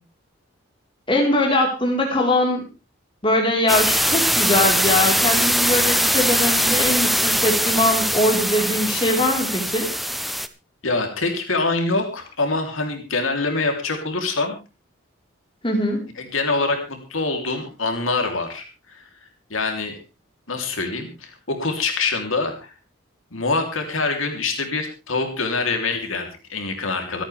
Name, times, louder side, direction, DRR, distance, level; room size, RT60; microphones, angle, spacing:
voice 1, 1.1-2.6 3.2-9.9 15.6-16.0, left 1 dB, 25° left, 0 dB, 4.2 m, -21 dB
sound 1, 3.7-10.5, equal, ahead, 0.6 m, -21 dB
voice 2, 10.8-14.6 16.2-19.0 19.5-20.0 20.5-22.7 23.3-27.2, left 3 dB, 85° left, 3 dB, 3.3 m, -25 dB
26.5 x 9.0 x 3.5 m, 0.30 s
head